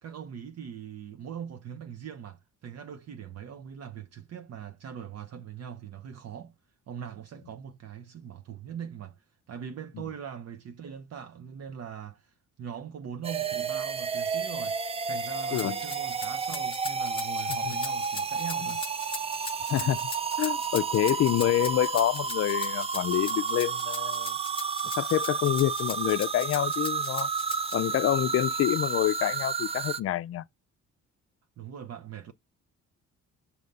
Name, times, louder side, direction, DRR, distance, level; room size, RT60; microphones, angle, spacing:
voice 1, 0.0-6.5 6.9-18.8 31.6-32.3, right 8 dB, 55° right, 0.8 m, -41 dB
sound 1, 13.2-30.0, right 5 dB, 20° right, 0.4 m, -31 dB
Rattle (instrument), 15.5-27.8, left 3 dB, 15° left, 0.9 m, -40 dB
voice 2, 19.7-20.1 20.4-24.4 25.0-27.3 27.7-30.5, left 13 dB, 50° left, 0.4 m, -27 dB
6.5 x 2.8 x 5.3 m
cardioid pair, 90°, 30 cm